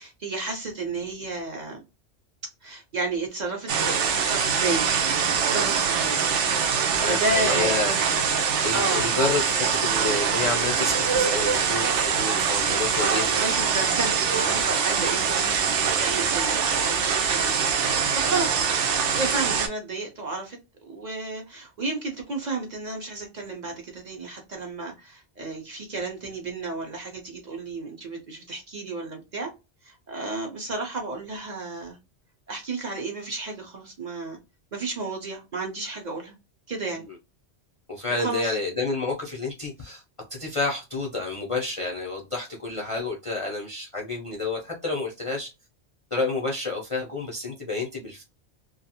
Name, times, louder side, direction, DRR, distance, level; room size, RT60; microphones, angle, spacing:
voice 1, 0.0-1.8 2.6-6.3 6.8-8.0 8.7-9.4 13.0-17.5 17.8-18.7 19.1-20.6 20.9-29.5 29.8-32.0 32.5-34.4 34.7-36.3 36.7-37.1 38.2-38.5, right 3 dB, 45° right, 0.7 m, -32 dB
sound 1, 3.7-19.7, right 6 dB, 80° right, 0.9 m, -24 dB
voice 2, 7.0-8.0 8.6-13.3 36.9-37.2 37.9-40.0 40.3-45.5 46.1-48.2, left 3 dB, 45° left, 0.4 m, -29 dB
2.5 x 2.3 x 2.7 m
omnidirectional pair, 1.2 m